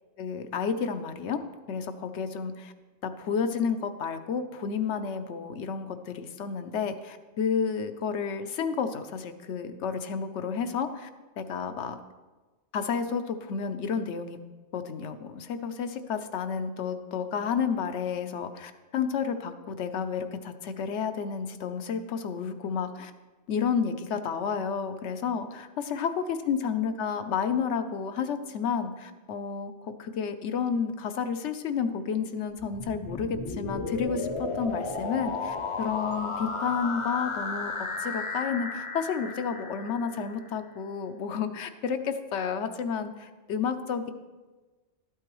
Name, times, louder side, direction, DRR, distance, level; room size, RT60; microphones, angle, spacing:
voice 1, 0.2-1.4 1.7-2.7 3.0-11.1 11.4-12.0 12.7-14.4 14.7-23.1 23.5-37.7 38.0-44.1, left 6 dB, 85° left, 8 dB, 1.0 m, -31 dB
sound 1, 32.6-40.5, left 3 dB, 35° left, 0.5 m, -34 dB
12.0 x 8.3 x 3.0 m, 1.3 s
omnidirectional pair, 1.2 m